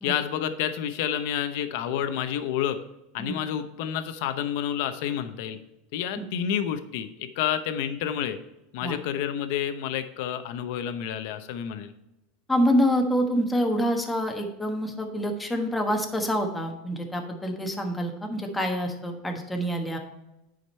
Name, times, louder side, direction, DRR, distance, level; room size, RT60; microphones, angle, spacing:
voice 1, 0.0-2.8 3.1-5.6 5.9-8.4 8.7-11.9, left 9 dB, 65° left, 9 dB, 0.8 m, -29 dB
voice 2, 12.5-20.0, equal, 5° left, 2 dB, 1.2 m, -26 dB
10.0 x 5.1 x 4.3 m, 0.91 s
supercardioid pair, 145°, 0 cm